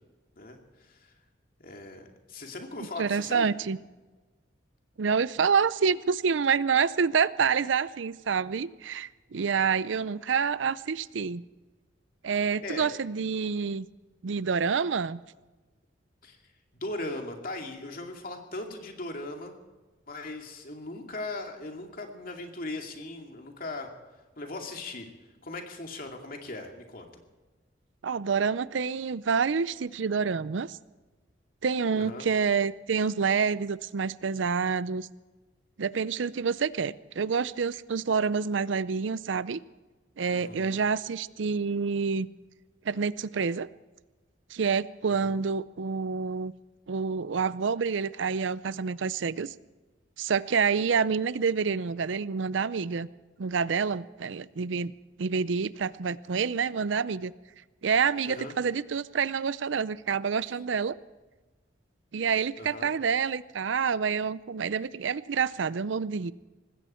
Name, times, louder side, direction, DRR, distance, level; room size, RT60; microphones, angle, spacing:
voice 1, 0.4-1.0 1.6-3.5 12.6-12.9 16.2-16.4 16.7-19.5 20.1-23.9 24.4-25.1 25.4-27.1 31.9-32.2 40.3-40.8 45.2-45.4 58.3-58.5 62.6-62.9, left 2 dB, 50° left, 3 dB, 2.4 m, -39 dB
voice 2, 3.0-3.8 5.0-11.4 12.2-13.9 14.2-15.2 28.0-30.8 31.6-35.1 35.8-39.6 40.2-42.3 42.9-43.7 44.5-46.5 46.9-49.5 50.2-53.1 53.4-54.9 55.2-57.3 57.8-61.0 62.1-66.3, right 6 dB, 80° right, 18 dB, 0.5 m, -27 dB
19.5 x 16.0 x 4.4 m, 1.2 s
head